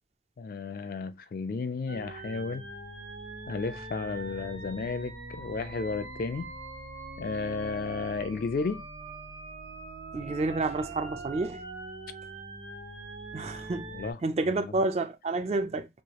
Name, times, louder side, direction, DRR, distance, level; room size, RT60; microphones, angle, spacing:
voice 1, 0.4-2.6 3.5-6.5 7.2-8.8 13.9-14.2 14.6-14.8, left 4 dB, 50° left, 0.3 m, -33 dB
sound 1, 1.9-14.1, right 2 dB, 90° right, 1.2 m, -42 dB
voice 2, 10.1-11.6 13.3-13.9 14.2-15.9, right 2 dB, 35° right, 0.3 m, -29 dB
4.6 x 2.3 x 2.9 m
head